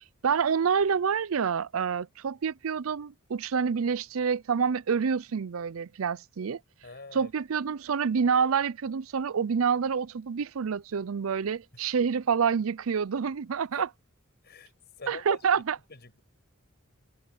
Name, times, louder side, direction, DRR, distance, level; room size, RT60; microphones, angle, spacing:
voice 1, 0.0-6.6 7.1-13.9 15.1-15.8, right 6 dB, 70° right, 0.5 m, -27 dB
voice 2, 6.8-7.3 12.0-12.1 13.7-13.8 14.4-14.7 15.0-15.4 15.9-16.2, left 3 dB, 50° left, 6.1 m, -43 dB
head